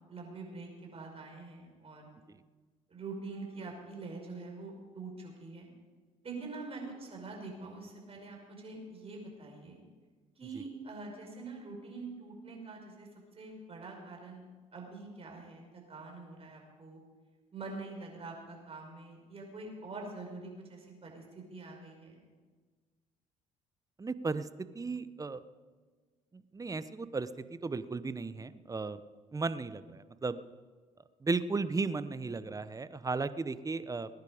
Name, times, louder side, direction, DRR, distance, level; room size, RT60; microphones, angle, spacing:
voice 1, 0.1-2.1 2.9-5.7 6.2-9.8 10.4-13.1 13.3-14.4 14.7-17.0 17.5-22.2, right 3 dB, 40° right, 0 dB, 5.5 m, -45 dB
voice 2, 24.0-25.4 26.3-29.0 29.3-30.4 31.2-34.1, right 4 dB, 20° right, 14 dB, 0.9 m, -35 dB
20.5 x 10.5 x 5.1 m, 1.4 s
supercardioid pair, 65°, 16 cm